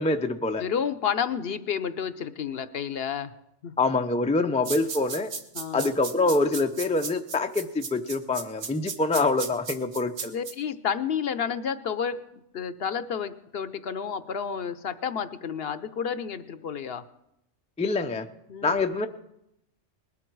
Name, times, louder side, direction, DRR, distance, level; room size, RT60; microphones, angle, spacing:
voice 1, 0.0-0.6 3.8-5.3 5.7-10.3 17.8-18.3 18.6-19.1, left 3 dB, 10° left, 7 dB, 0.3 m, -25 dB
voice 2, 0.6-3.3 3.6-3.7 5.5-5.9 10.3-12.2 12.5-17.0 18.5-18.9, left 7 dB, 60° left, 12 dB, 0.8 m, -30 dB
sound 1, 4.6-10.5, right 5 dB, 70° right, 1.5 m, -35 dB
20.0 x 12.5 x 4.6 m, 0.84 s
omnidirectional pair, 1.3 m